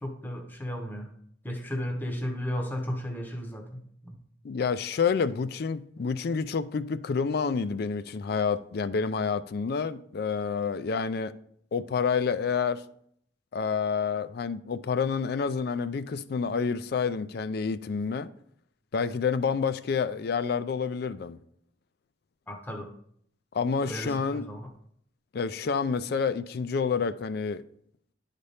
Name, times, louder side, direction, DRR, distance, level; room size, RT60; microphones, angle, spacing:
voice 1, 0.0-1.1 1.4-4.2 22.5-22.9 23.9-24.6, equal, 10° left, 0.8 m, -34 dB
voice 2, 4.4-11.3 11.7-12.8 13.5-18.3 18.9-21.4 23.5-24.5 25.3-27.6, left 5 dB, 55° left, 0.4 m, -28 dB
11.0 x 4.1 x 3.3 m
head